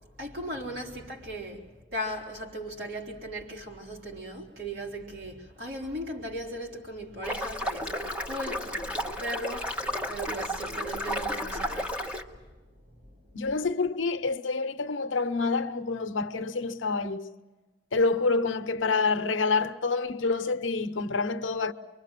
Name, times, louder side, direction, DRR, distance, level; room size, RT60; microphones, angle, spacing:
voice 1, 0.2-12.0 12.3-12.4, right 1 dB, 55° right, 3.8 m, -38 dB
sound 1, 7.2-12.2, equal, 5° right, 1.2 m, -33 dB
voice 2, 13.3-17.3 17.9-21.7, left 4 dB, 75° left, 0.7 m, -27 dB
24.5 x 23.5 x 7.4 m
head